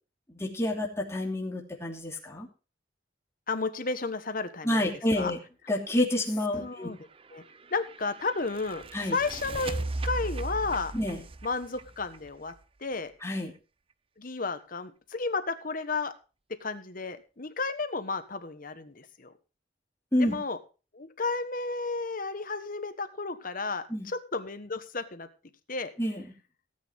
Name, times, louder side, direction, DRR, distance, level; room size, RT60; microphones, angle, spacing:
voice 1, 0.3-2.5 4.6-5.4 5.7-6.9 8.9-9.2 10.9-11.2 13.2-13.5 20.1-20.3 23.9-24.1 26.0-26.2, left 1 dB, 15° left, -1 dB, 2.7 m, -28 dB
voice 2, 3.5-4.8 5.2-5.3 6.6-7.0 7.3-7.4 7.7-8.8 9.1-9.8 10.0-10.9 11.4-12.5 12.8-13.1 14.2-16.1 16.6-19.3 20.2-20.6 20.9-25.3 25.7-25.9, left 3 dB, 45° left, 10 dB, 1.3 m, -32 dB
sound 1, 7.1-12.9, right 2 dB, 30° right, 0.6 m, -37 dB
17.5 x 8.9 x 3.6 m, 0.33 s
head